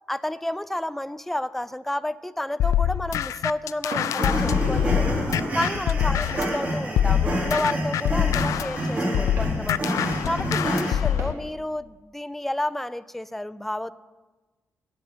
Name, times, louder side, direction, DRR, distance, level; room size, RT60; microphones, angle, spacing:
voice 1, 0.1-5.2 5.5-9.9 10.2-13.9, left 1 dB, 5° left, 14 dB, 0.4 m, -31 dB
sound 1, 2.6-6.6 7.0-11.3, left 10 dB, 80° left, 0.3 m, -25 dB
Walk footsteps, 3.9-4.2 4.8-5.0 5.7-5.9 6.6-6.8 7.6-7.8 8.5-8.6 9.4-9.6 10.3-10.5 11.2-11.4, right 3 dB, 55° right, 3.5 m, -38 dB
sound 2, 4.2-10.9, right 1 dB, 25° right, 3.6 m, -28 dB
10.0 x 8.2 x 9.3 m, 1.2 s
wide cardioid pair, 155°, 5 cm